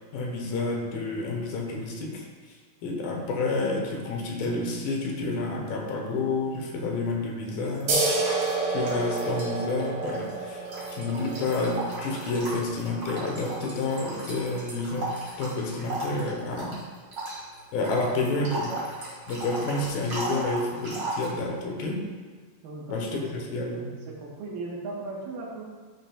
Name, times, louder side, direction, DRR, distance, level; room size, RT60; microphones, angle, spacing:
voice 1, 0.1-2.3 2.8-8.0 8.7-10.6 10.9-16.8 17.7-18.7 19.3-22.0 22.9-23.9, left 2 dB, 80° left, 1 dB, 2.7 m, -29 dB
sound 1, 7.6-9.5 9.8-21.3, right 1 dB, 35° right, 1.7 m, -36 dB
sound 2, 7.9-15.0, right 3 dB, 60° right, 2.3 m, -31 dB
voice 2, 22.6-23.7 24.1-25.6, right 2 dB, 75° right, -3 dB, 2.8 m, -38 dB
12.0 x 5.9 x 2.3 m, 1.5 s
omnidirectional pair, 4.1 m